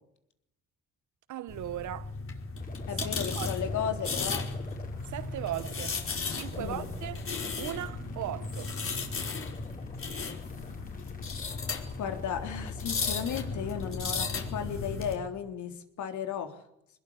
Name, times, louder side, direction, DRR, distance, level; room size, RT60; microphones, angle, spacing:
voice 1, 1.3-2.1 3.3-3.6 5.1-6.0 6.3-7.3 7.6-8.7, right 13 dB, 75° right, 1.1 m, -37 dB
sound 1, 1.5-15.1, left 4 dB, 45° left, 5.2 m, -35 dB
sound 2, 2.6-13.9, left 3 dB, 30° left, 5.2 m, -50 dB
voice 2, 2.9-4.4 6.6-6.9 12.0-16.6, left 8 dB, 75° left, 3.6 m, -35 dB
23.0 x 20.5 x 9.9 m
cardioid pair, 90°, 30 cm